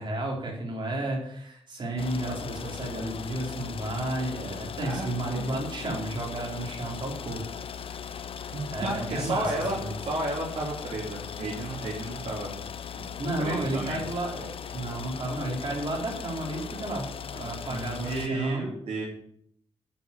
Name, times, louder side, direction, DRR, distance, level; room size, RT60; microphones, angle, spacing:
voice 1, 0.0-7.4 7.7-8.2 8.7-9.9 13.2-14.5 14.7-18.6, right 1 dB, 45° right, -1 dB, 4.3 m, -32 dB
sound 1, 2.0-18.3, left 7 dB, 55° left, 0.7 m, -39 dB
voice 2, 8.5-12.6 12.9-13.1 13.4-14.0 17.7-19.1, right 2 dB, 70° right, -4 dB, 3.2 m, -32 dB
10.5 x 6.0 x 8.8 m, 0.69 s
cardioid pair, 110°, 11 cm